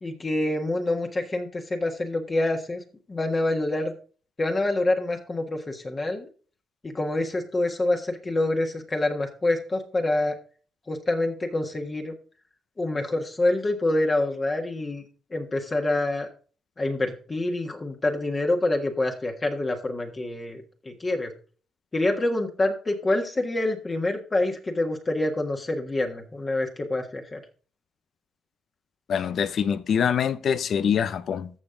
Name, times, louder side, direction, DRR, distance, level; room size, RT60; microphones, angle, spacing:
voice 1, 0.0-2.8 3.1-3.9 4.4-6.3 6.8-10.3 10.9-12.1 12.8-15.0 15.3-16.3 16.8-21.3 21.9-27.4, left 2 dB, 30° left, 1.5 m, -26 dB
voice 2, 29.1-31.5, left 7 dB, 60° left, 0.7 m, -24 dB
14.0 x 5.4 x 3.9 m
cardioid pair, 90°, 0 cm